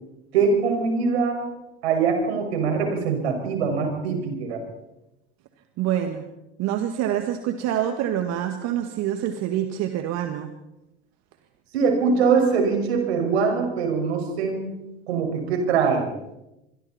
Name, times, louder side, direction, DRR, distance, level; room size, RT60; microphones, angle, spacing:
voice 1, 0.3-1.5 1.8-4.6 11.7-14.7 15.1-16.1, right 5 dB, 80° right, 3 dB, 6.0 m, -22 dB
voice 2, 5.8-6.2 6.6-10.5, right 11 dB, 55° right, 6 dB, 2.0 m, -26 dB
26.5 x 22.5 x 4.4 m, 0.92 s
hypercardioid pair, 85°, 32 cm